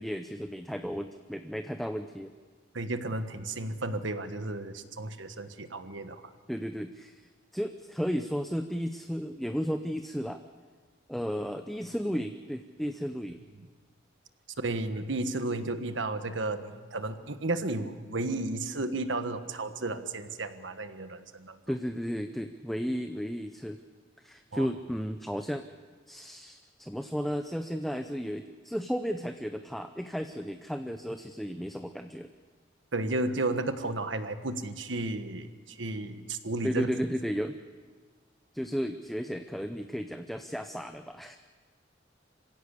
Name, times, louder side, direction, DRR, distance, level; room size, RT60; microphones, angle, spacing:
voice 1, 0.0-2.3 6.5-7.2 7.5-10.4 11.1-13.4 21.7-23.8 24.2-25.7 26.1-32.3 36.6-37.6 38.5-41.4, equal, ahead, 7 dB, 0.6 m, -34 dB
voice 2, 2.7-6.3 14.6-21.6 24.5-24.7 32.9-36.9, right 2 dB, 75° right, 9 dB, 1.4 m, -33 dB
26.0 x 16.5 x 8.3 m, 1.5 s
head